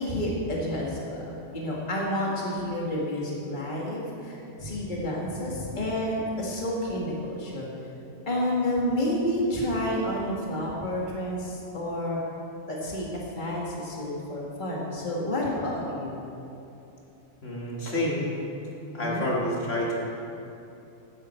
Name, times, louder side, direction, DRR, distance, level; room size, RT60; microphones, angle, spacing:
voice 1, 0.0-7.7 8.3-12.2 12.7-16.2 19.0-19.3, left 1 dB, 40° left, -4 dB, 2.1 m, -30 dB
voice 2, 17.4-18.3 18.9-20.0, left 1 dB, 80° left, -5 dB, 2.6 m, -28 dB
15.0 x 10.5 x 4.4 m, 2.8 s
omnidirectional pair, 1.3 m